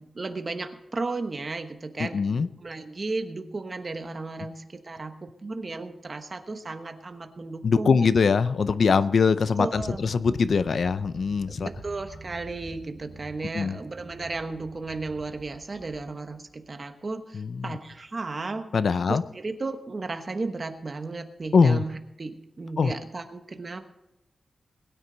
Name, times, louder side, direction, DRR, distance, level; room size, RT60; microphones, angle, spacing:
voice 1, 0.0-8.0 9.6-10.0 11.5-18.7 19.1-23.8, right 3 dB, 30° right, 7 dB, 1.1 m, -34 dB
voice 2, 2.0-2.5 7.6-11.7 13.5-13.8 17.3-17.8 18.7-19.2 21.5-21.8 22.8-22.9, left 5 dB, 55° left, 14 dB, 0.5 m, -22 dB
sound 1, 9.7-16.5, right 3 dB, 55° right, 2.2 m, -46 dB
21.0 x 9.9 x 3.9 m, 0.93 s
wide cardioid pair, 170°, 0 cm